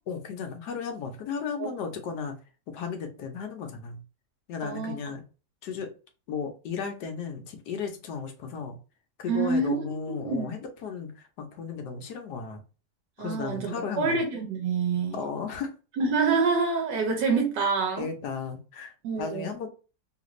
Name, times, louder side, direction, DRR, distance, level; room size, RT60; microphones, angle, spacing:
voice 1, 0.1-2.4 2.7-4.0 4.5-5.2 5.6-5.9 6.3-8.8 9.2-12.6 13.2-14.2 15.1-15.7 18.0-19.7, left 6 dB, 75° left, 1.3 m, -35 dB
voice 2, 4.6-5.0 9.3-10.5 13.2-15.2 16.0-18.1 19.0-19.5, right 4 dB, 85° right, 1.4 m, -27 dB
3.3 x 2.5 x 3.0 m
omnidirectional pair, 1.8 m